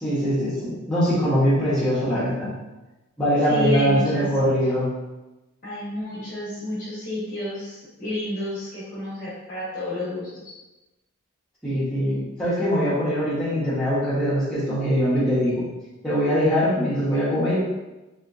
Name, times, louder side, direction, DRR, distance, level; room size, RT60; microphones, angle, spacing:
voice 1, 0.0-2.5 3.2-4.9 11.6-15.7 16.0-17.6, equal, 5° left, -11 dB, 1.2 m, -22 dB
voice 2, 3.4-4.3 5.6-10.5, left 1 dB, 40° left, -10 dB, 0.9 m, -30 dB
3.4 x 2.8 x 2.5 m, 1.1 s
head